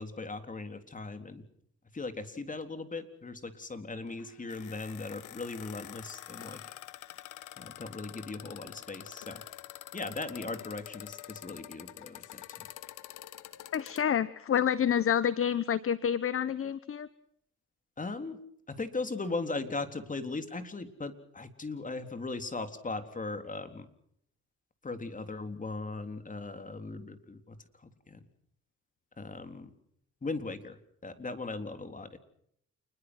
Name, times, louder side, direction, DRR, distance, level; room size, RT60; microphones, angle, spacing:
voice 1, 0.0-1.4 1.9-6.7 7.6-9.4 9.9-12.7 18.0-18.4 18.7-23.9 24.8-28.3 29.2-29.7 30.2-32.2, left 3 dB, 25° left, 8 dB, 3.7 m, -38 dB
sound 1, 4.1-14.0, left 13 dB, 80° left, 1.4 m, -47 dB
voice 2, 13.7-17.1, left 8 dB, 45° left, 15 dB, 1.1 m, -28 dB
29.0 x 21.5 x 6.2 m, 0.70 s
cardioid pair, 90°, 30 cm